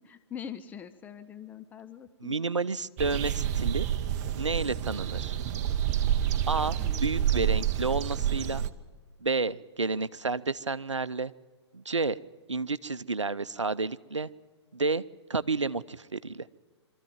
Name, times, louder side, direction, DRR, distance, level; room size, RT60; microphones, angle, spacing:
voice 1, 0.0-2.3 6.8-7.1, left 8 dB, 10° left, 10 dB, 0.6 m, -43 dB
voice 2, 2.2-3.9 4.4-5.4 6.5-8.6 9.2-11.3 11.7-12.2 12.5-14.3 14.7-15.0 15.3-16.5, right 3 dB, 85° right, 16 dB, 0.6 m, -30 dB
sound 1, 3.0-8.7, right 10 dB, 35° right, 0.8 m, -28 dB
23.5 x 13.5 x 9.2 m, 1.4 s
figure-of-eight pair, 115°, 15 cm